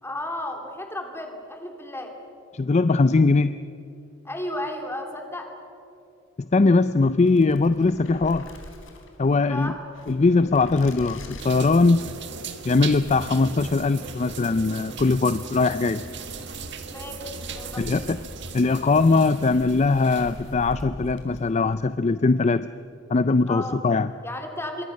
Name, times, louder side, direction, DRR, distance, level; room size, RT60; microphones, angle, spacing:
voice 1, 0.0-2.1 4.2-5.5 9.3-9.8 16.9-17.2 17.5-18.0 23.5-23.8 24.2-24.8, left 1 dB, 15° left, 3 dB, 3.1 m, -33 dB
voice 2, 2.5-3.6 6.5-8.5 9.2-9.7 10.1-12.0 12.6-16.0 17.8-18.2 18.5-22.7 23.1-24.1, left 3 dB, 35° left, 13 dB, 0.5 m, -20 dB
sound 1, 6.9-21.8, left 1 dB, 85° left, 3.7 m, -44 dB
sound 2, 11.4-20.5, right 5 dB, 65° right, 1.7 m, -38 dB
26.5 x 22.5 x 6.5 m, 2.8 s
head